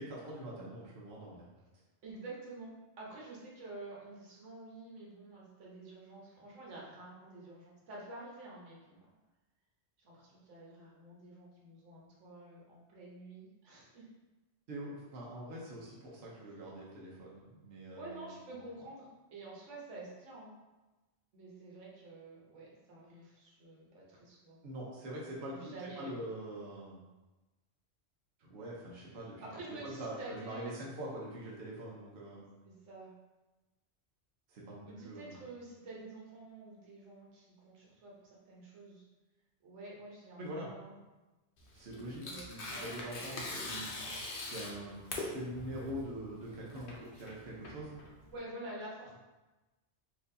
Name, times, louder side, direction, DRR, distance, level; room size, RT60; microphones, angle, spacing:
voice 1, 0.0-1.5 14.7-18.3 24.6-27.0 28.4-29.5 29.8-32.5 34.5-35.3 40.4-40.7 41.7-44.2 44.5-48.0, right 1 dB, 65° right, -4 dB, 0.9 m, -44 dB
voice 2, 2.0-9.1 10.0-14.1 17.9-20.5 21.3-24.6 25.4-26.3 29.4-30.7 32.6-33.1 34.8-39.0 39.6-41.0 41.9-43.2 48.3-49.1, right 2 dB, 80° right, -4 dB, 1.2 m, -49 dB
Tearing, 41.6-48.4, left 2 dB, 55° left, 0.8 m, -42 dB
4.3 x 2.6 x 2.6 m, 1.1 s
omnidirectional pair, 1.2 m